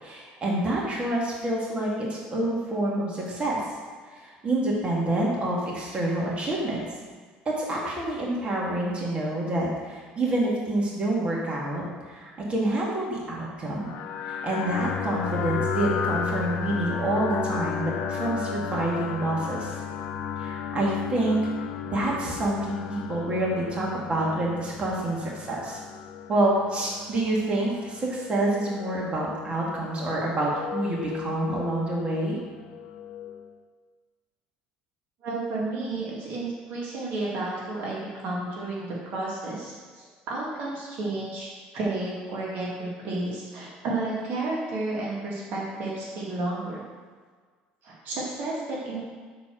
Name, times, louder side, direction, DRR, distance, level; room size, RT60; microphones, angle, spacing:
voice 1, 0.0-3.6 4.1-6.8 7.5-14.0 14.2-19.8 20.4-25.8 26.3-32.4, right 1 dB, 30° right, -4 dB, 2.1 m, -27 dB
sound 1, 13.8-33.5, left 7 dB, 70° left, 0.6 m, -34 dB
voice 2, 35.2-41.5 41.7-46.8 47.8-49.0, right 2 dB, 65° right, -4 dB, 1.9 m, -32 dB
6.9 x 4.3 x 6.1 m, 1.5 s
supercardioid pair, 100°, 4 cm